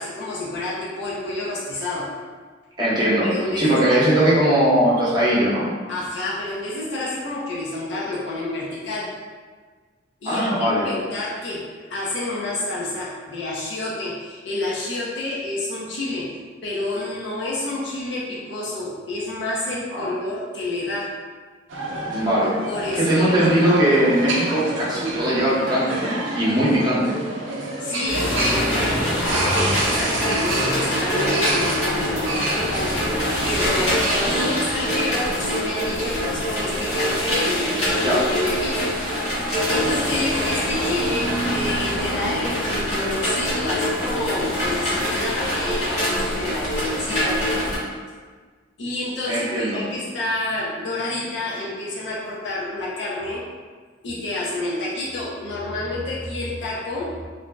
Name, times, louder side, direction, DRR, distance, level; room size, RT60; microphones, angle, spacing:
voice 1, 0.0-2.1 3.2-4.1 5.9-9.2 10.2-10.6 10.8-21.1 22.6-23.4 27.8-28.8 29.2-39.0 39.7-47.4 48.8-53.5 54.0-57.3, left 2 dB, 65° left, -6 dB, 0.5 m, -29 dB
voice 2, 2.8-3.3 3.6-5.6 10.2-10.8 19.9-20.1 22.1-22.5 22.9-27.1 37.9-38.2 49.3-49.8, right 1 dB, 25° right, -8 dB, 0.8 m, -20 dB
sound 1, 21.7-34.5, right 2 dB, 80° right, 0.5 m, -29 dB
sound 2, 28.1-47.8, equal, 40° left, 0.8 m, -24 dB
2.6 x 2.0 x 3.3 m, 1.5 s
head